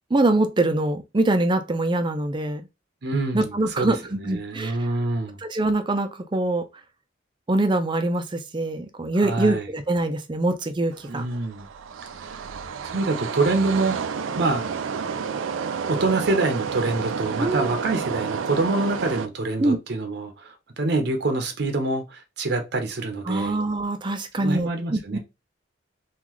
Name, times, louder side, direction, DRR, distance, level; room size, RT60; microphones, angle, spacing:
voice 1, 0.1-2.7 3.3-4.7 5.4-6.6 7.5-11.3 17.4-17.8 19.6-19.8 23.3-25.2, right 2 dB, 25° right, 0.4 m, -24 dB
voice 2, 3.0-5.4 9.1-9.6 11.1-11.7 12.2-12.4 12.8-14.6 15.9-23.6 24.4-25.2, right 2 dB, 60° right, 0.7 m, -26 dB
sound 1, 10.9-19.3, right 6 dB, 90° right, 0.4 m, -30 dB
3.7 x 2.4 x 3.0 m
head